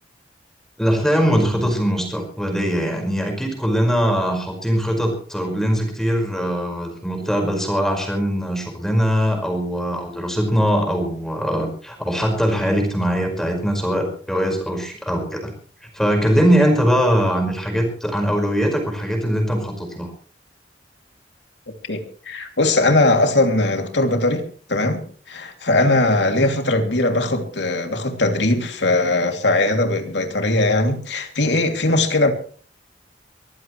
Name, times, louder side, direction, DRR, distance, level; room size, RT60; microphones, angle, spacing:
voice 1, 0.8-15.5 15.8-20.1, equal, 5° left, 2 dB, 5.1 m, -21 dB
voice 2, 21.9-32.3, left 2 dB, 75° left, 5 dB, 2.8 m, -20 dB
24.0 x 15.0 x 3.2 m, 0.43 s
head